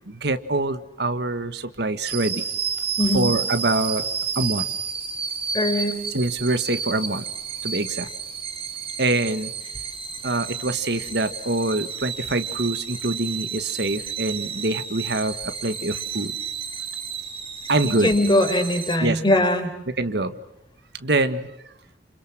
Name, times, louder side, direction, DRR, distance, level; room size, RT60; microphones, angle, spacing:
voice 1, 0.1-2.4 3.1-4.0 4.3-4.6 6.1-7.2 7.6-8.1 9.0-9.5 10.2-16.3 17.7-18.1 19.0-19.2 20.0-20.3 21.0-21.5, right 2 dB, 65° right, 10 dB, 1.6 m, -25 dB
sound 1, 2.1-19.0, right 6 dB, 35° right, 4.0 m, -31 dB
voice 2, 3.0-3.3 5.5-6.0 17.8-19.7, left 1 dB, 25° left, 6 dB, 4.4 m, -21 dB
29.5 x 28.0 x 6.1 m, 0.76 s
head